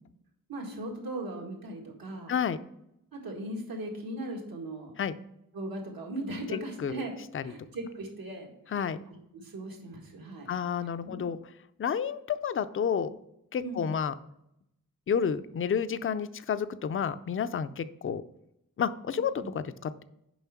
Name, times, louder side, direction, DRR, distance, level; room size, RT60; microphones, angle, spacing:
voice 1, 0.5-2.3 3.1-4.9 5.5-7.1 7.4-8.9 9.3-10.5 11.0-11.2 13.6-13.9 19.4-19.5, right 1 dB, 80° right, 0 dB, 2.0 m, -38 dB
voice 2, 6.5-7.1 7.3-7.5 8.7-9.0 10.5-11.4 11.8-13.2 13.5-14.2 15.1-18.2 18.8-20.0, left 7 dB, 40° left, 13 dB, 0.4 m, -30 dB
7.1 x 5.4 x 5.7 m, 0.80 s
wide cardioid pair, 145°, 35 cm